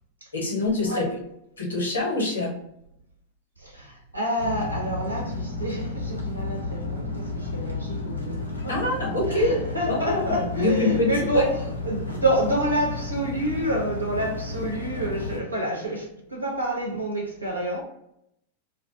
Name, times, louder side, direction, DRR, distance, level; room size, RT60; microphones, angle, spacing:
voice 1, 0.3-1.1 1.6-2.6 8.7-9.5 9.9-11.5, left 2 dB, 70° left, 0.9 m, -25 dB
voice 2, 3.6-8.9 9.3-17.8, right 1 dB, 85° right, 0.8 m, -28 dB
sound 1, 4.4-15.4, left 2 dB, 90° left, 0.5 m, -32 dB
2.3 x 2.1 x 2.7 m
figure-of-eight pair, 90°, 0 cm